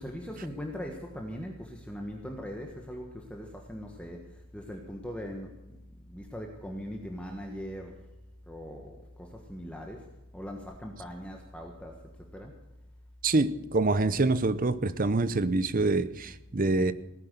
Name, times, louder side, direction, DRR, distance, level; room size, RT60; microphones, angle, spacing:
voice 1, 0.0-5.6 6.1-8.0 8.5-10.1 10.3-12.0 12.3-12.5, equal, 5° left, 1.3 m, -40 dB
voice 2, 13.2-16.9, right 2 dB, 40° right, 0.7 m, -26 dB
17.0 x 10.0 x 6.7 m
head